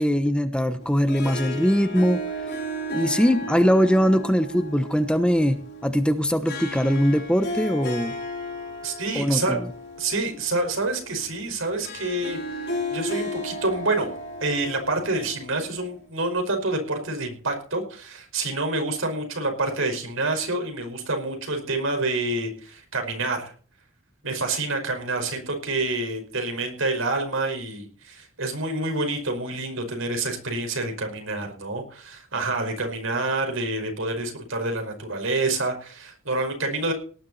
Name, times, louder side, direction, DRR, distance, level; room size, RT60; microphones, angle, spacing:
voice 1, 0.0-2.2 2.9-8.1 9.1-9.7, equal, 5° left, 9 dB, 1.0 m, -21 dB
Harp, 0.8-16.1, left 1 dB, 55° left, 4.5 m, -35 dB
voice 2, 8.8-9.6 10.0-14.1 14.4-23.5 24.2-36.9, right 2 dB, 80° right, 4 dB, 5.3 m, -27 dB
18.5 x 11.0 x 4.2 m, 0.43 s
head